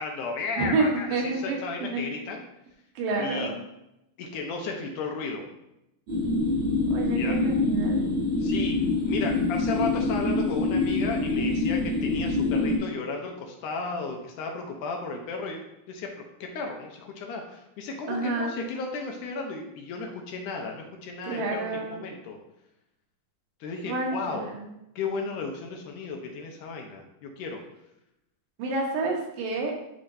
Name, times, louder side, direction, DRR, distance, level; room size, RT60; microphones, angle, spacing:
voice 1, 0.0-2.4 3.2-3.5 4.2-5.4 7.1-7.4 8.4-8.8 9.1-15.6 15.9-22.4 23.6-24.5 25.0-27.6, left 4 dB, 75° left, 2 dB, 2.2 m, -34 dB
voice 2, 0.6-2.1 3.0-3.6 6.9-8.1 18.1-18.7 21.3-21.9 23.8-24.7 28.6-29.7, right 3 dB, 80° right, 0 dB, 2.8 m, -29 dB
sound 1, 6.1-12.8, left 3 dB, 35° right, 2.7 m, -25 dB
10.5 x 3.7 x 2.7 m, 0.86 s
omnidirectional pair, 3.9 m